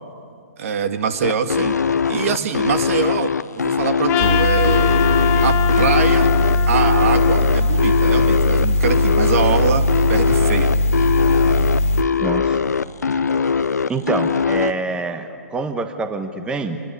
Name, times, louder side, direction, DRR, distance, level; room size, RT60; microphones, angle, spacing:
voice 1, 0.6-1.8 2.1-5.1 5.4-6.3 6.7-10.8, right 7 dB, 55° right, 8 dB, 2.0 m, -24 dB
sound 1, 1.2-14.7, left 6 dB, 80° left, 0.8 m, -21 dB
Trumpet, 4.1-8.4, left 11 dB, 25° left, 2.0 m, -25 dB
sound 2, 4.2-12.0, left 1 dB, 60° left, 1.1 m, -19 dB
voice 2, 12.2-12.6 13.9-16.8, right 3 dB, 10° right, 7 dB, 1.3 m, -26 dB
28.0 x 20.5 x 9.8 m, 2.4 s
hypercardioid pair, 130°, 9 cm